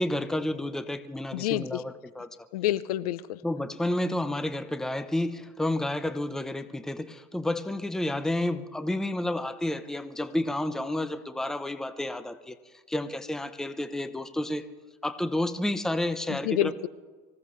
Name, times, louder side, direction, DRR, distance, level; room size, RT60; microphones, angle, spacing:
voice 1, 0.0-2.3 3.4-12.6 12.9-14.7 15.0-16.7, left 1 dB, 5° left, 11 dB, 0.8 m, -30 dB
voice 2, 1.3-1.8 2.5-3.4 16.3-16.9, left 13 dB, 90° left, 17 dB, 0.6 m, -28 dB
24.5 x 16.0 x 3.2 m, 1.3 s
supercardioid pair, 105°, 19 cm